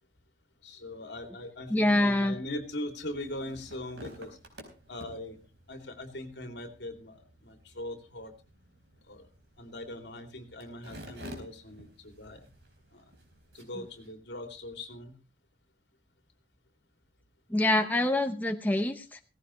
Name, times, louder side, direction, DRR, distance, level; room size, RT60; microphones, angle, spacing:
voice 1, 0.6-4.4 4.9-5.4 5.7-8.3 9.1-9.3 9.6-12.5 12.9-13.0 13.5-15.2, left 1 dB, 70° left, 6 dB, 2.7 m, -41 dB
voice 2, 1.7-2.3 17.5-19.2, left 1 dB, 10° left, 5 dB, 0.8 m, -25 dB
sound 1, 2.9-14.1, equal, 70° right, 4.4 m, -51 dB
17.0 x 15.5 x 3.1 m, 0.31 s
head